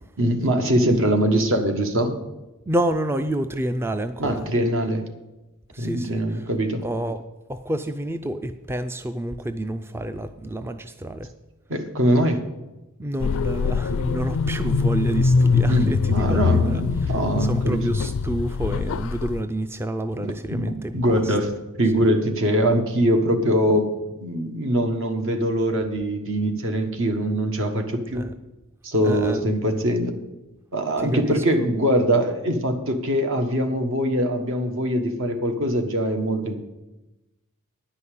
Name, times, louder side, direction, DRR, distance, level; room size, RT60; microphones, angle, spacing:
voice 1, 0.2-2.2 4.2-5.0 5.8-6.8 11.7-12.4 15.7-17.9 20.2-21.5 21.8-23.9 24.2-28.2 28.8-30.2 30.7-36.6, right 1 dB, 65° right, 6 dB, 1.4 m, -22 dB
voice 2, 2.7-4.4 5.7-6.4 6.8-7.2 7.5-11.3 13.0-21.3 28.1-28.3 29.0-29.4 31.0-31.7, right 1 dB, 10° right, 10 dB, 0.3 m, -29 dB
sound 1, 13.2-19.4, left 5 dB, 65° left, 0.4 m, -23 dB
10.0 x 5.5 x 8.3 m, 1.0 s
head